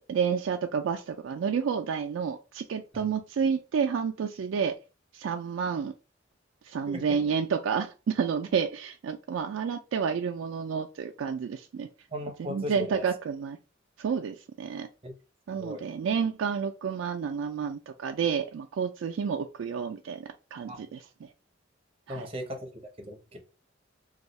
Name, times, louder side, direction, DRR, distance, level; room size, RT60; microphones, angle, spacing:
voice 1, 0.1-4.7 5.1-5.9 6.7-11.9 12.4-13.6 14.0-14.9 15.5-21.3 22.1-22.2, right 6 dB, 90° right, 0.3 m, -30 dB
voice 2, 12.1-13.1 15.0-15.2 15.6-15.8 20.7-20.8 22.1-23.4, left 1 dB, 30° right, 0.8 m, -37 dB
2.6 x 2.3 x 4.1 m
head